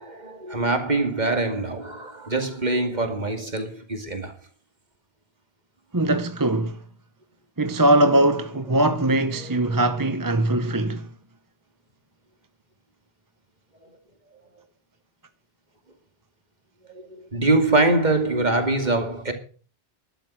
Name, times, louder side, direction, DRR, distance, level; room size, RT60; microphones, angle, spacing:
voice 1, 0.0-4.3 9.4-9.7 16.9-19.3, right 2 dB, 45° right, 2.5 m, -24 dB
voice 2, 5.9-6.8 7.6-11.1, right 1 dB, 20° right, 0.8 m, -21 dB
12.5 x 12.0 x 6.3 m
omnidirectional pair, 1.1 m